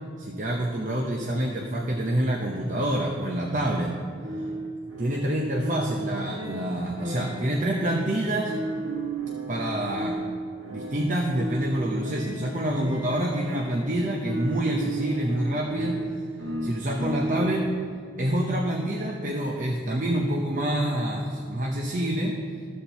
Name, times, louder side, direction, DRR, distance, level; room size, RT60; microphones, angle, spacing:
voice 1, 0.2-4.0 4.3-4.4 5.0-8.5 9.5-10.2 10.7-16.0 16.6-17.7 18.2-22.4, right 1 dB, 40° right, 0 dB, 0.7 m, -27 dB
sound 1, 4.2-17.8, right 2 dB, 80° right, 1.5 m, -34 dB
13.0 x 4.4 x 6.8 m, 2.2 s
head